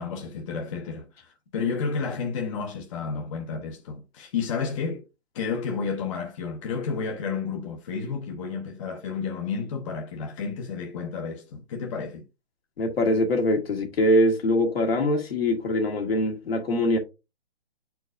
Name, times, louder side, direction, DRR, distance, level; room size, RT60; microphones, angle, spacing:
voice 1, 0.0-5.0 5.3-12.2, left 5 dB, 30° left, 0.8 m, -31 dB
voice 2, 12.8-17.0, left 1 dB, 65° left, 1.9 m, -23 dB
8.9 x 4.5 x 2.5 m
hypercardioid pair, 150°, 33 cm